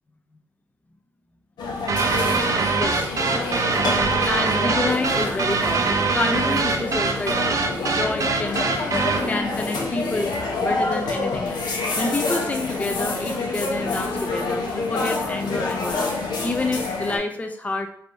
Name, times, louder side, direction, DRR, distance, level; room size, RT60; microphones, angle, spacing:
sound 1, 1.6-17.2, left 3 dB, 85° left, 0.7 m, -27 dB
sound 2, 1.9-9.3, right 4 dB, 50° right, 0.5 m, -23 dB
voice 1, 2.2-3.8 4.2-8.6 9.2-10.3 10.6-16.1 16.4-17.9, left 2 dB, 20° left, 5 dB, 0.5 m, -29 dB
3.3 x 2.5 x 4.5 m, 0.66 s
cardioid pair, 65°, 7 cm